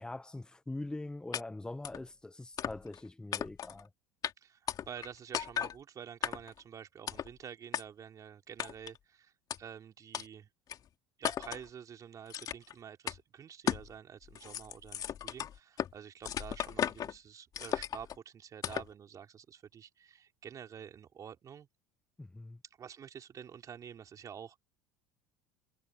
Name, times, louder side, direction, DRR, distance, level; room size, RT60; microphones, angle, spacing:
voice 1, 0.0-3.9 22.2-22.6, left 2 dB, 10° left, 0.9 m, -43 dB
sound 1, 1.3-1.4 1.8-2.0 2.6-3.0 3.3-3.8 4.2-4.3 4.7-5.1 5.3-5.7 6.2-6.6 7.1-7.3 7.7-7.8 8.6-9.0 9.5-9.6 10.1-10.3 10.7-10.8 11.2-11.7 12.3-12.7 13.1-13.2 13.7-13.9 14.2-15.9 16.2-17.1 17.5-18.2 18.6-18.9, left 9 dB, 45° left, 2.6 m, -36 dB
voice 2, 4.4-10.5 11.2-21.7 22.8-24.6, right 8 dB, 40° right, 3.2 m, -49 dB
supercardioid pair, 90°, 9 cm